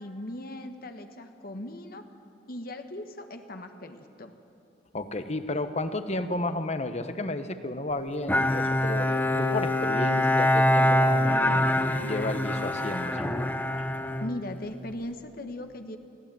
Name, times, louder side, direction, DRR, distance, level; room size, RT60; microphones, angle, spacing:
voice 1, 0.0-2.0 2.5-4.3 14.2-16.0, left 1 dB, 60° left, 6 dB, 1.3 m, -38 dB
voice 2, 4.9-9.1 9.4-11.7 12.0-13.3, left 2 dB, 40° left, 10 dB, 1.2 m, -32 dB
Bowed string instrument, 8.3-15.0, left 1 dB, 10° left, 1.0 m, -25 dB
23.0 x 15.5 x 9.1 m, 2.6 s
head